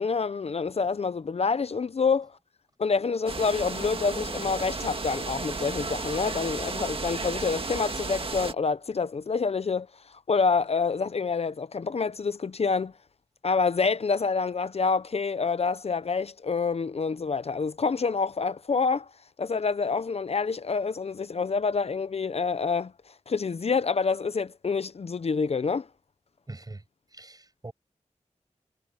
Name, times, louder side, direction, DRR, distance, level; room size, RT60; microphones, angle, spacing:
voice 1, 0.0-2.3 2.8-9.9 10.3-12.9 13.4-19.1 19.4-22.9 23.3-25.9, left 5 dB, 55° left, 0.6 m, -27 dB
sound 1, 3.3-8.5, right 3 dB, 45° right, 1.8 m, -33 dB
voice 2, 26.5-26.8 27.1-27.7, right 2 dB, 30° right, 7.9 m, -42 dB
wide cardioid pair, 100°, 13 cm